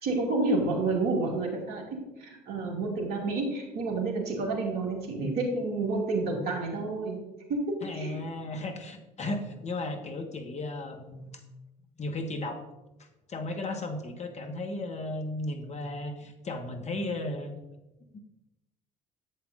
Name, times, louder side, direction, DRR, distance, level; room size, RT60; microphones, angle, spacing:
voice 1, 0.0-7.2 7.5-8.2, right 3 dB, 60° right, 0 dB, 2.4 m, -29 dB
voice 2, 7.8-11.3 12.0-12.6 13.3-17.5 18.1-18.2, left 2 dB, 35° left, 5 dB, 1.5 m, -35 dB
11.0 x 7.7 x 2.6 m, 0.99 s
hypercardioid pair, 55°, 19 cm